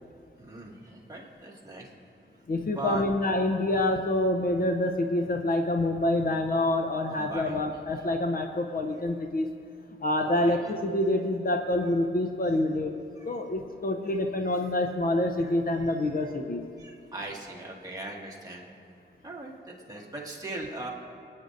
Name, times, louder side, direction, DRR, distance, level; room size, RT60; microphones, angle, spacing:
voice 1, 0.4-1.9 2.7-3.0 7.1-7.5 10.2-10.6 13.2-13.4 14.5-14.6 15.4-15.6 16.2-16.3 16.8-18.7 19.2-20.9, right 2 dB, 20° right, -4 dB, 2.0 m, -39 dB
voice 2, 2.5-9.5 10.0-12.9 13.2-16.6, left 1 dB, 50° left, 4 dB, 0.7 m, -27 dB
25.0 x 9.5 x 2.6 m, 2.4 s
wide cardioid pair, 115°, 20 cm